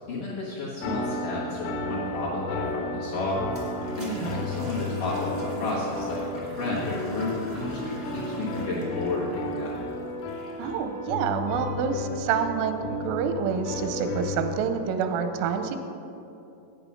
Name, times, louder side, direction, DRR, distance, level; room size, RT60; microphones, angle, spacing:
voice 1, 0.1-3.4 4.0-9.7, left 2 dB, 65° left, -7 dB, 2.1 m, -31 dB
sound 1, 0.8-14.5, left 2 dB, 90° left, 3.7 m, -34 dB
Toilet flush, 3.5-10.7, right 1 dB, 40° right, 0.7 m, -41 dB
voice 2, 4.1-4.5 10.6-15.8, right 6 dB, 85° right, 7 dB, 3.1 m, -28 dB
9.9 x 9.0 x 5.7 m, 2.8 s
omnidirectional pair, 5.6 m